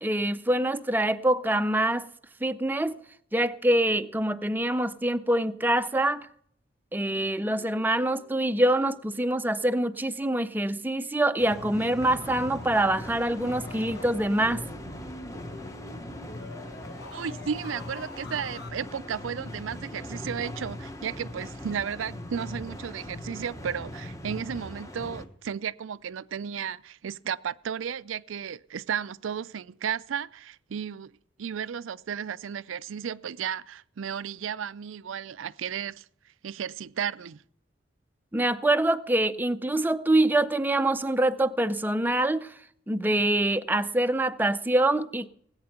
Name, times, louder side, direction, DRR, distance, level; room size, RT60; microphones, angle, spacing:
voice 1, 0.0-2.1 2.4-3.0 3.3-6.3 6.9-14.6 38.3-42.5 42.9-45.3, right 1 dB, 10° right, 0.5 m, -25 dB
Guitar, 7.4-10.7, right 1 dB, 80° left, 4.9 m, -57 dB
sound 1, 11.4-25.3, left 1 dB, 15° left, 1.0 m, -40 dB
sound 2, 12.0-18.7, left 2 dB, 55° left, 1.2 m, -45 dB
voice 2, 17.1-31.1 31.4-36.1 36.4-37.4, right 7 dB, 85° right, 0.4 m, -34 dB
18.0 x 8.7 x 5.8 m
head